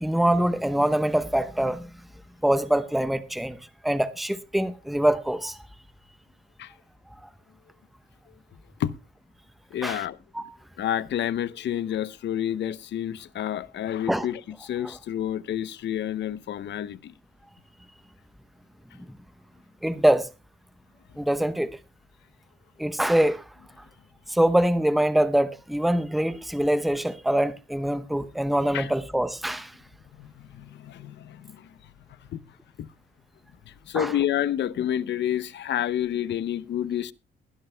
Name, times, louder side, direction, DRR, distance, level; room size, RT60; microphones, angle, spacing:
voice 1, 0.0-1.9 2.4-3.6 3.8-5.6 9.8-10.0 10.3-10.4 14.1-14.3 19.8-20.3 21.2-21.8 22.8-23.4 24.3-29.7 33.9-34.1, right 1 dB, ahead, 0.9 m, -24 dB
voice 2, 9.7-10.2 10.8-17.1 28.7-28.9 30.2-31.7 32.3-32.4 32.8-32.9 33.7-37.1, left 11 dB, 65° left, 0.8 m, -29 dB
21.0 x 12.5 x 2.2 m
cardioid pair, 90°, 20 cm